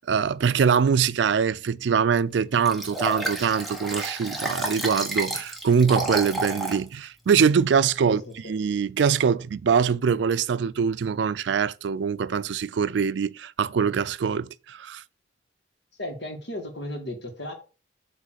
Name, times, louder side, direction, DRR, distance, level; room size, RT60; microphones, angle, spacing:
voice 1, 0.1-8.2 8.5-15.0, right 6 dB, 75° right, 0.4 m, -23 dB
Liquid, 2.6-6.8 7.3-7.4, right 1 dB, ahead, 1.2 m, -30 dB
voice 2, 8.1-8.5 16.0-17.5, left 1 dB, 70° left, 1.8 m, -35 dB
7.7 x 3.2 x 6.3 m
head